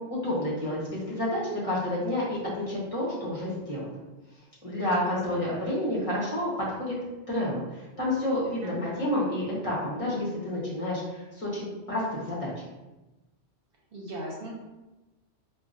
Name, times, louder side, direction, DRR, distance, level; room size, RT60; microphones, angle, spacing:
voice 1, 0.0-4.0 4.6-6.9 7.3-12.5, left 1 dB, 30° left, -7 dB, 1.2 m, -30 dB
voice 2, 8.6-8.9 13.9-14.5, right 1 dB, 60° right, -3 dB, 0.9 m, -38 dB
4.8 x 2.4 x 2.5 m, 1.1 s
omnidirectional pair, 1.1 m